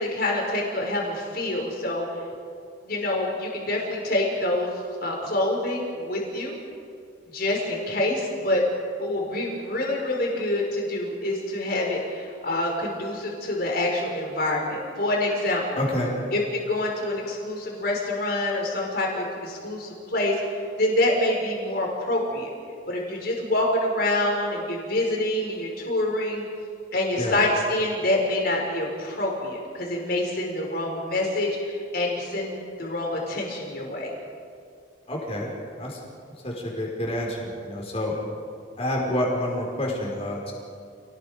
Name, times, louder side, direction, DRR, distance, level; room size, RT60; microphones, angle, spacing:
voice 1, 0.0-2.1 2.9-4.7 5.0-6.6 7.3-8.6 9.0-15.8 16.3-22.5 22.9-26.4 26.9-34.1, left 1 dB, 55° left, -1 dB, 5.3 m, -26 dB
voice 2, 15.7-16.1 27.2-27.4 35.1-35.5 35.8-36.0 36.4-38.1 38.8-40.5, left 1 dB, 35° left, -2 dB, 5.0 m, -28 dB
29.0 x 19.0 x 5.2 m, 2.3 s
head